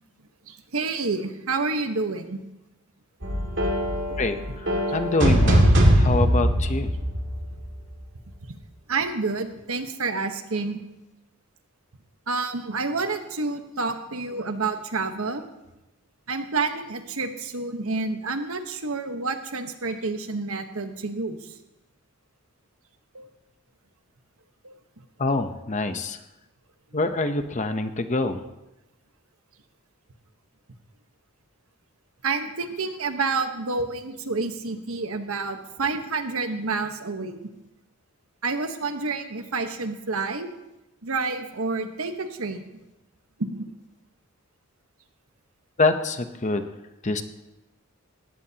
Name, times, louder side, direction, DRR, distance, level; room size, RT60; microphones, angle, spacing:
voice 1, 0.5-2.4 8.5-8.6 8.9-10.8 12.3-15.4 16.3-21.6 23.1-23.3 24.6-24.8 32.2-37.4 38.4-40.5 41.0-42.7 43.4-43.7, right 3 dB, 75° right, 7 dB, 1.2 m, -29 dB
sound 1, 3.2-7.8, equal, 55° right, 2.3 m, -21 dB
voice 2, 4.2-6.9 25.2-26.2 26.9-28.4 45.8-46.6 47.0-47.2, left 2 dB, 35° left, 9 dB, 0.8 m, -25 dB
19.5 x 15.0 x 2.9 m, 0.96 s
head